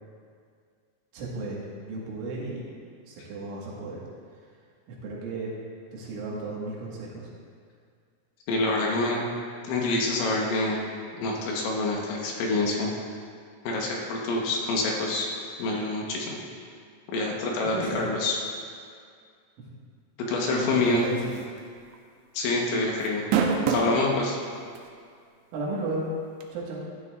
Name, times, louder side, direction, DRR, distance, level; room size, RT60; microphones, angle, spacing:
voice 1, 1.1-2.7 3.1-4.0 4.9-5.6 5.9-7.3 17.6-18.0 20.4-21.3 25.5-26.1 26.5-26.9, right 2 dB, 70° right, -5 dB, 4.0 m, -34 dB
voice 2, 8.5-9.2 9.7-10.8 11.2-12.9 13.6-15.3 15.6-16.4 17.1-18.4 20.3-21.0 22.3-23.2 23.7-24.4, left 2 dB, 75° left, -2 dB, 3.4 m, -26 dB
sound 1, 21.4-21.6 21.9-22.0 23.0-24.0 24.7-24.8 26.4-26.5, right 6 dB, 90° right, 2.4 m, -24 dB
16.0 x 11.0 x 2.5 m, 2.2 s
omnidirectional pair, 5.9 m